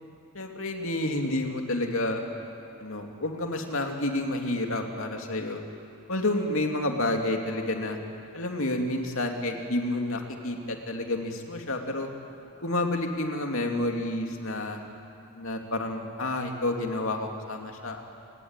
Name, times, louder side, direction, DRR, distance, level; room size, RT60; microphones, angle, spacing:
voice 1, 0.3-2.2 2.8-5.6 6.1-8.0 8.3-12.1 12.6-14.8 15.3-18.0, left 1 dB, 70° left, 3 dB, 2.7 m, -29 dB
30.0 x 19.5 x 9.1 m, 2.7 s
head